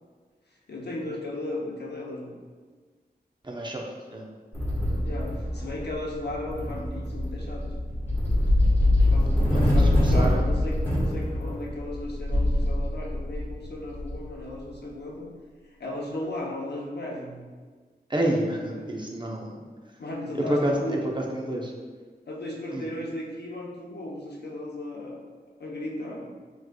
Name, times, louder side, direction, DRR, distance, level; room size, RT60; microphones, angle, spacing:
voice 1, 0.7-2.4 5.0-7.7 9.1-15.3 15.7-17.5 18.7-18.9 20.0-21.0 22.3-25.2 25.6-26.3, left 1 dB, 80° left, -2 dB, 0.8 m, -35 dB
voice 2, 3.4-3.8 4.1-4.2 9.6-10.4 18.1-19.6 20.5-21.7 22.7-22.9, right 1 dB, 25° right, -1 dB, 0.6 m, -29 dB
Quake Short, 4.5-14.7, left 1 dB, 10° left, 1.5 m, -24 dB
6.0 x 3.1 x 2.3 m, 1.5 s
wide cardioid pair, 75°, 17 cm